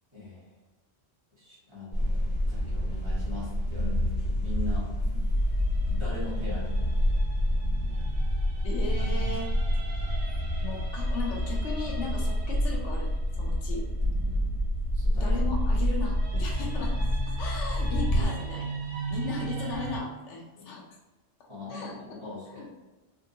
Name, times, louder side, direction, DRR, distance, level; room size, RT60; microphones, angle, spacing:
voice 1, 0.1-0.5 1.4-4.9 5.8-6.9 14.2-14.6 14.9-15.4 15.8-15.9 20.5-20.7 21.5-22.7, left 2 dB, 25° right, -9 dB, 1.5 m, -41 dB
sound 1, 1.9-18.3, equal, 35° left, 1.2 m, -28 dB
sound 2, 5.1-14.3 15.1-20.0, right 3 dB, 45° right, 0.7 m, -40 dB
sound 3, 5.6-9.4 13.0-13.1 14.0-17.9, left 4 dB, 70° right, 1.3 m, -37 dB
voice 2, 8.6-9.5 10.6-13.1 13.4-13.9 15.2-20.8 21.7-22.0 22.5-22.7, left 4 dB, 85° left, 0 dB, 1.1 m, -37 dB
3.7 x 2.6 x 2.7 m, 1.1 s
omnidirectional pair, 1.2 m